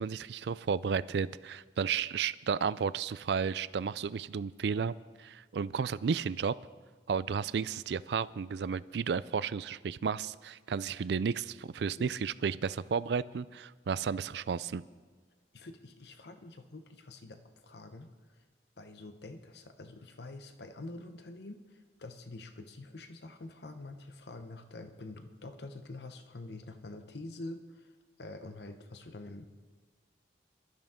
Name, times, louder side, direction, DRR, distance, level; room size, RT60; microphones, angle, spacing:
voice 1, 0.0-6.5 7.1-14.8, right 6 dB, 70° right, 17 dB, 0.4 m, -33 dB
voice 2, 15.5-17.4 17.6-18.1 18.8-27.9 28.2-29.7, left 2 dB, 70° left, 8 dB, 0.9 m, -46 dB
21.5 x 12.5 x 3.7 m, 1.4 s
head